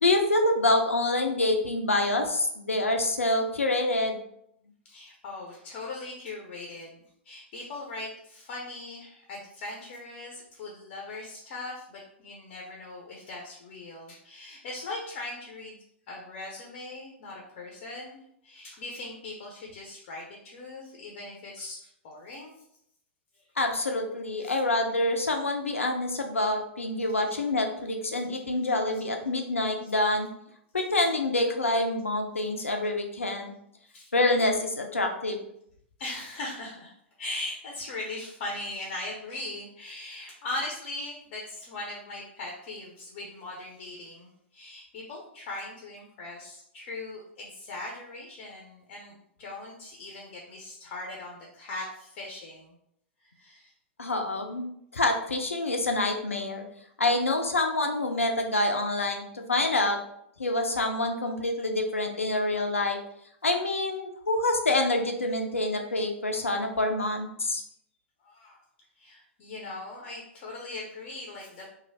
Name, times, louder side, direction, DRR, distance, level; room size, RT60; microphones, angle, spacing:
voice 1, 0.0-4.2 23.6-30.3 30.7-33.5 34.1-35.4 54.0-54.7 54.9-56.6 57.0-60.0 60.4-63.0 63.4-67.6, left 2 dB, 85° left, 4 dB, 0.5 m, -26 dB
voice 2, 4.9-15.8 16.1-22.5 23.3-23.5 24.4-24.5 28.1-28.2 28.9-29.0 33.9-34.1 36.0-52.7 53.2-53.7 66.4-66.5 68.2-68.6 69.0-71.7, left 2 dB, 50° left, -1 dB, 0.7 m, -40 dB
3.0 x 2.4 x 2.7 m, 0.73 s
figure-of-eight pair, 100°, 7 cm